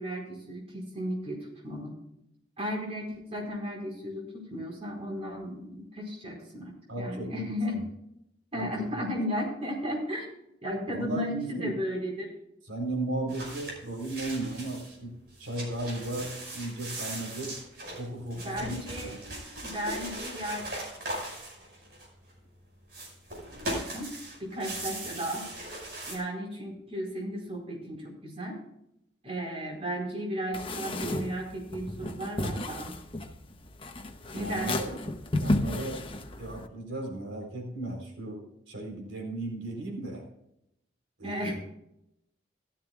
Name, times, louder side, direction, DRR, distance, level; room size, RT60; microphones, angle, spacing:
voice 1, 0.0-2.0 2.6-7.8 8.5-10.3 10.6-12.3 18.3-19.2 19.6-20.7 23.7-24.1 24.4-25.5 26.1-28.6 29.2-32.9 34.3-35.0 41.2-41.5, equal, 30° right, -1 dB, 4.6 m, -35 dB
voice 2, 6.9-7.8 8.5-8.8 10.9-11.7 12.7-15.1 15.4-17.6 18.0-18.8 19.1-19.2 34.4-34.9 35.4-36.0 36.4-40.2 41.2-41.5, right 2 dB, 90° right, 2 dB, 4.0 m, -35 dB
sound 1, 13.3-15.0 15.3-22.3 22.9-26.2, right 1 dB, 55° right, 5.5 m, -39 dB
sound 2, 30.5-36.7, left 1 dB, 30° left, 0.9 m, -33 dB
16.0 x 13.0 x 2.4 m, 0.80 s
head